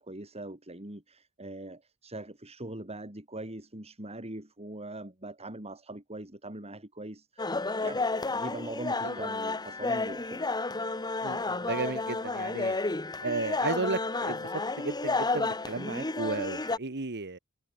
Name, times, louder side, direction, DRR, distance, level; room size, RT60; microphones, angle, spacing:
voice 1, 0.0-7.5 7.8-8.0 8.3-10.5, right 1 dB, 30° right, 4.6 m, -41 dB
sound 1, 7.4-16.8, left 3 dB, 20° left, 1.2 m, -31 dB
voice 2, 11.2-12.8 13.2-14.5 14.8-17.4, right 3 dB, 55° right, 1.5 m, -34 dB
head